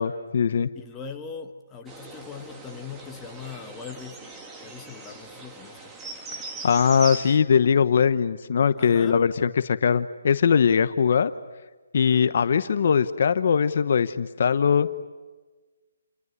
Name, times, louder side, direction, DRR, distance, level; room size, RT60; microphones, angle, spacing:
voice 1, 0.0-0.7 6.6-11.3 11.9-14.9, left 6 dB, 50° left, 12 dB, 1.0 m, -21 dB
voice 2, 0.7-4.2 4.6-5.9 8.8-9.2 12.1-12.2, left 6 dB, 10° left, 3 dB, 1.4 m, -40 dB
sound 1, 1.9-7.4, right 3 dB, 10° right, 1.8 m, -40 dB
29.0 x 21.0 x 9.7 m, 1.3 s
hypercardioid pair, 170°, 0 cm